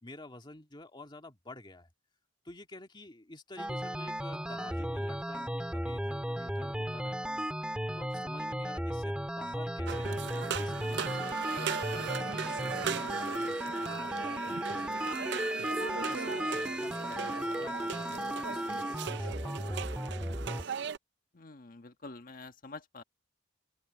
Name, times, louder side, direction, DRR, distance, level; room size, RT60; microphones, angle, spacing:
voice 1, 0.0-1.9 2.4-7.5 7.9-19.9, left 2 dB, 25° left, 2.2 m, -50 dB
sound 1, 3.6-20.6, equal, 5° right, 1.8 m, -35 dB
sound 2, 9.9-21.0, right 7 dB, 65° right, 0.5 m, -38 dB
voice 2, 21.3-23.0, left 3 dB, 50° left, 1.4 m, -47 dB
open air
head